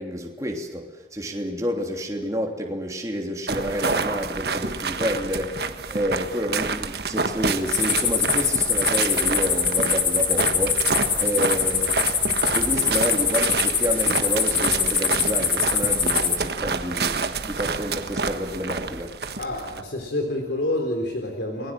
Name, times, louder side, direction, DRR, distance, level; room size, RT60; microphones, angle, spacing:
voice 1, 0.0-10.9 11.2-11.9 12.5-19.2, equal, 20° right, 1 dB, 3.1 m, -29 dB
sound 1, 3.5-19.8, right 4 dB, 60° right, 1.4 m, -28 dB
sound 2, 7.7-16.4, left 6 dB, 25° left, 2.3 m, -23 dB
voice 2, 19.4-21.7, left 1 dB, 75° left, 3 dB, 3.8 m, -28 dB
29.0 x 21.0 x 7.6 m, 1.2 s
head